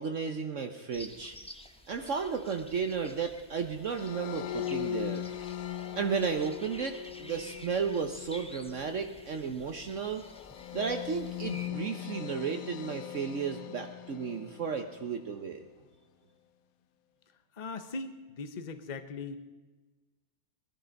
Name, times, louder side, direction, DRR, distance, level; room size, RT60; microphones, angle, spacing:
voice 1, 0.0-1.3 1.9-5.2 6.0-10.2 10.7-15.7, right 6 dB, 55° right, 5 dB, 1.1 m, -33 dB
sound 1, 0.9-11.7, left 1 dB, 5° left, 0.5 m, -51 dB
sound 2, 3.8-15.2, left 11 dB, 70° left, 1.1 m, -40 dB
voice 2, 17.5-19.4, left 3 dB, 35° left, 9 dB, 1.0 m, -39 dB
19.0 x 12.5 x 5.2 m, 1.2 s
omnidirectional pair, 1.6 m